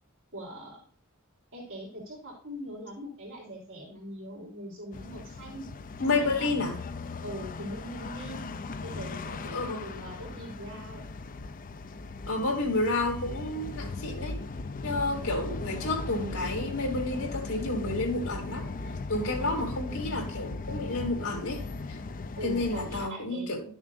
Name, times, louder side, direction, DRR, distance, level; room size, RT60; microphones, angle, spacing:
voice 1, 0.3-0.8 1.5-5.7 6.0-6.5 7.2-8.4 8.8-11.1 19.4-19.7 22.4-23.5, equal, 65° right, 3.5 m, -41 dB
sound 1, 4.9-23.1, left 3 dB, 40° left, 0.5 m, -38 dB
voice 2, 6.0-6.7 9.5-9.8 12.3-14.4 14.8-18.7 19.1-21.6 21.9-22.0 22.4-23.6, left 2 dB, 75° left, 2.8 m, -30 dB
12.0 x 7.1 x 2.6 m
head